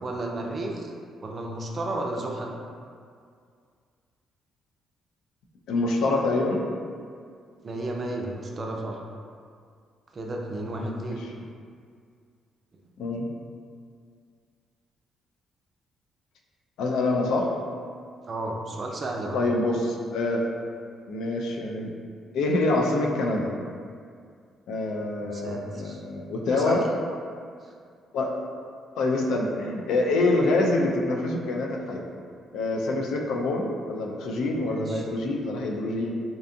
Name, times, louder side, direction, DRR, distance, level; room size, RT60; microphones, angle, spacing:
voice 1, 0.0-0.9 1.2-2.5 7.6-9.0 10.1-11.2 18.3-19.4 25.2-26.0 26.5-26.8 27.6-27.7 34.6-35.1, right 2 dB, 40° right, 0 dB, 0.3 m, -33 dB
voice 2, 5.7-6.6 10.7-11.0 13.0-13.3 16.8-17.5 19.3-20.5 21.1-21.9 22.3-23.5 24.7-26.9 28.1-28.3 29.0-32.0 32.5-36.2, left 2 dB, 85° left, 0 dB, 0.3 m, -26 dB
2.6 x 2.2 x 2.5 m, 2.2 s
cardioid pair, 90°, 0 cm